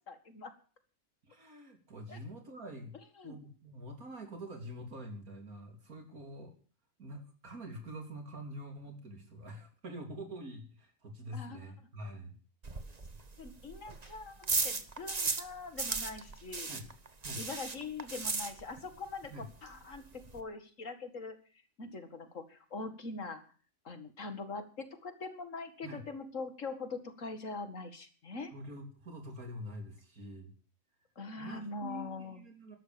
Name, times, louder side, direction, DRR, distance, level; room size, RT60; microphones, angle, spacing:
voice 1, 0.1-0.5 2.1-2.2 3.2-3.4 11.3-11.6 13.4-16.7 17.4-21.4 21.8-23.4 23.8-28.5 31.2-32.4, left 3 dB, 60° left, 10 dB, 2.3 m, -43 dB
voice 2, 1.2-2.9 3.2-6.5 7.0-12.4 16.7-16.9 17.2-17.4 19.3-19.5 25.8-26.0 28.5-30.5 31.4-32.8, equal, 80° right, 5 dB, 3.7 m, -45 dB
sound 1, 12.6-15.5 15.8-19.0 19.2-19.3 19.7-19.8 19.9-20.4, right 4 dB, 30° right, 1.3 m, -36 dB
13.0 x 11.5 x 7.0 m, 0.40 s
omnidirectional pair, 1.5 m